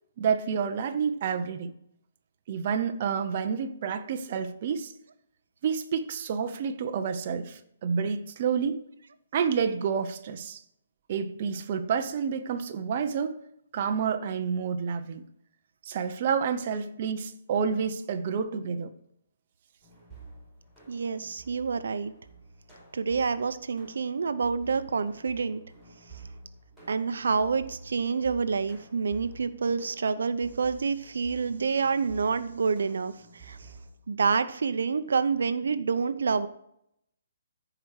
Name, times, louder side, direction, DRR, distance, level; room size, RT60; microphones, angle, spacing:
voice 1, 0.2-1.7 2.5-4.9 5.6-8.8 9.3-10.6 11.1-13.3 13.7-15.2 15.9-18.9, right 6 dB, 35° right, 7 dB, 0.7 m, -29 dB
sound 1, 19.8-33.9, right 3 dB, 5° left, 4.5 m, -50 dB
voice 2, 20.9-22.1 22.9-25.6 26.9-33.6 34.1-36.5, right 5 dB, 75° right, 11 dB, 0.7 m, -28 dB
14.5 x 4.9 x 4.8 m, 0.75 s
hypercardioid pair, 170°, 0 cm